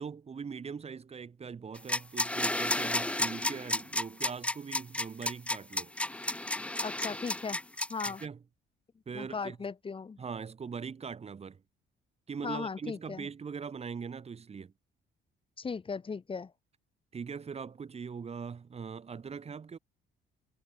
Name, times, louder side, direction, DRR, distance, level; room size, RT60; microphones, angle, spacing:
voice 1, 0.0-5.9 8.1-8.4 9.1-9.6 10.2-11.6 12.3-14.7 17.1-19.8, right 6 dB, 30° right, 2.7 m, -41 dB
sound 1, 1.8-8.3, left 1 dB, 5° left, 0.7 m, -32 dB
voice 2, 6.8-7.6 7.9-8.2 9.1-10.2 12.4-13.3 15.6-16.5, left 5 dB, 25° left, 2.5 m, -37 dB
cardioid pair, 145°, 20 cm